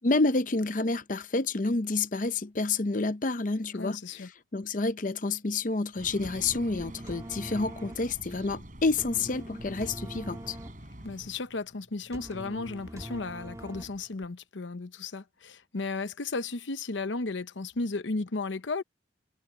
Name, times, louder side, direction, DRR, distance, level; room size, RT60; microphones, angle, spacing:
voice 1, 0.0-10.6, left 3 dB, 45° left, 0.7 m, -29 dB
voice 2, 3.7-4.3 11.0-18.8, left 3 dB, 80° left, 0.9 m, -34 dB
sound 1, 6.0-11.4, right 1 dB, 45° right, 4.8 m, -46 dB
sound 2, 6.2-14.2, right 1 dB, 15° right, 2.7 m, -44 dB
head